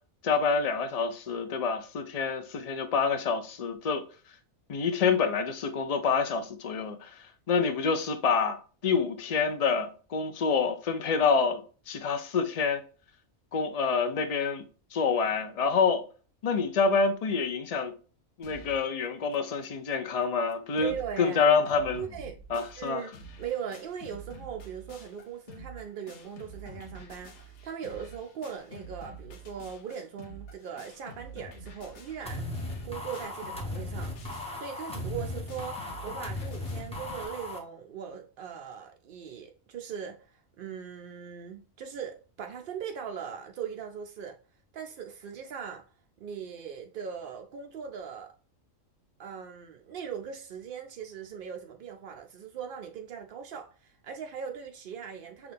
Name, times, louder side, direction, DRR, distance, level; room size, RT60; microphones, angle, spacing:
voice 1, 0.2-4.0 4.7-11.6 11.9-12.8 13.5-14.6 14.9-16.0 16.4-17.9 18.4-22.0 22.5-23.0, left 5 dB, 80° left, 0.3 m, -27 dB
sound 1, 18.4-18.9 19.3-19.4 19.6-19.7 20.2-20.3 20.5-21.1 21.4-37.3, right 1 dB, 65° left, 1.1 m, -47 dB
voice 2, 20.8-21.4 21.9-22.4 22.8-23.1 23.4-32.5 32.8-34.1 34.6-44.4 44.7-45.8 46.2-48.3 49.2-55.5, right 7 dB, 65° right, 0.5 m, -39 dB
sound 2, 32.3-37.6, left 2 dB, 5° left, 0.8 m, -37 dB
6.1 x 2.5 x 3.4 m
omnidirectional pair, 1.4 m